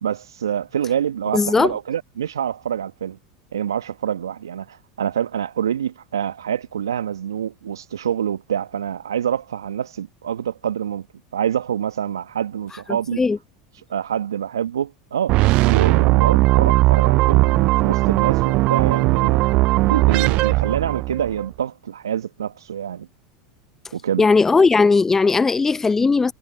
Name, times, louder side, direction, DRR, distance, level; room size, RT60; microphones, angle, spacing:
voice 1, 0.0-3.2 3.5-11.0 11.3-13.2 13.7-19.5 19.9-23.1 23.9-24.3, right 9 dB, 80° right, 1.3 m, -26 dB
voice 2, 1.3-1.7 13.2-13.4 24.2-26.3, left 4 dB, 15° left, 0.7 m, -17 dB
sound 1, 15.3-21.4, right 21 dB, 50° right, 0.3 m, -17 dB
hypercardioid pair, 85°, 2 cm